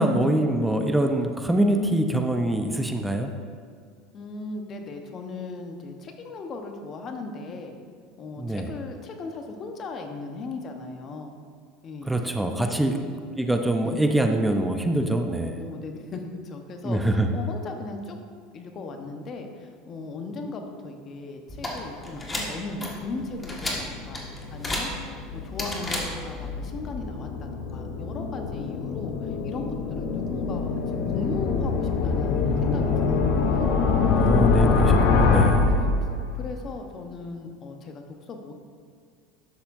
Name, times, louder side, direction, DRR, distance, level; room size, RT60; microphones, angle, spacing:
voice 1, 0.0-3.3 8.4-8.7 12.1-12.9 13.4-15.6 16.8-17.3 32.4-33.0 34.0-35.9, right 1 dB, 5° right, 5 dB, 0.7 m, -24 dB
voice 2, 4.1-7.7 8.2-11.3 11.8-13.1 13.8-14.0 15.6-18.2 18.5-24.2 24.5-30.7 31.1-33.8 34.6-34.9 35.6-35.9 36.3-38.5, left 3 dB, 40° left, 4 dB, 1.1 m, -37 dB
sound 1, 21.5-26.5, left 1 dB, 20° left, 1.7 m, -34 dB
sound 2, 23.6-36.5, left 4 dB, 60° left, 0.8 m, -24 dB
12.0 x 6.9 x 2.7 m, 2.1 s
hypercardioid pair, 85°, 0 cm